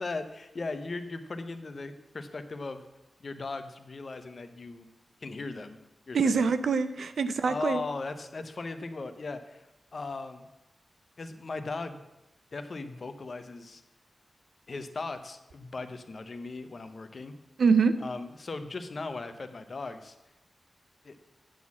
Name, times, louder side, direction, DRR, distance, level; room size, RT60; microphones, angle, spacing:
voice 1, 0.0-2.8 3.2-4.9 5.2-5.8 6.1-6.5 7.4-9.7 9.9-10.5 11.2-12.0 12.5-13.8 14.7-17.3 18.0-20.2 21.0-21.2, left 3 dB, 45° left, 9 dB, 0.7 m, -38 dB
voice 2, 6.1-7.8 17.6-18.0, right 5 dB, 80° right, 12 dB, 0.5 m, -24 dB
9.1 x 4.2 x 7.1 m, 0.95 s
wide cardioid pair, 140°, 0 cm